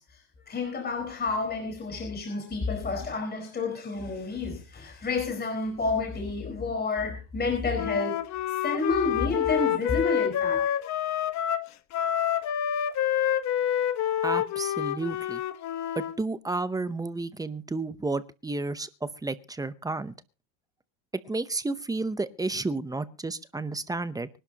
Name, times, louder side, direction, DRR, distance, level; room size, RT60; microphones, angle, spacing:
voice 1, 0.0-8.2 8.6-10.6, left 3 dB, 20° left, 4.7 m, -30 dB
Wind instrument woodwind instrument, 7.7-16.2, left 10 dB, 35° left, 1.1 m, -28 dB
voice 2, 14.2-15.4 16.0-20.1 21.2-24.3, right 3 dB, 10° right, 0.7 m, -32 dB
24.5 x 11.0 x 2.9 m
supercardioid pair, 130°, 46 cm